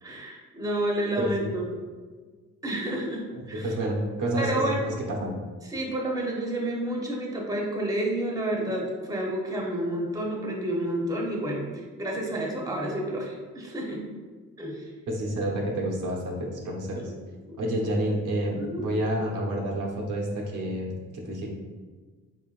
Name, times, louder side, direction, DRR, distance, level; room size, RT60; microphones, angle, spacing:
voice 1, 0.0-1.6 2.6-3.7 4.4-4.8 5.6-14.1 14.6-14.9 17.0-17.1 17.5-17.6 18.6-18.8, right 1 dB, 10° right, -2 dB, 0.9 m, -30 dB
voice 2, 3.5-5.3 15.1-17.1 17.6-21.5, right 1 dB, 85° right, -2 dB, 1.0 m, -29 dB
4.1 x 3.7 x 2.5 m, 1.4 s
cardioid pair, 90°, 30 cm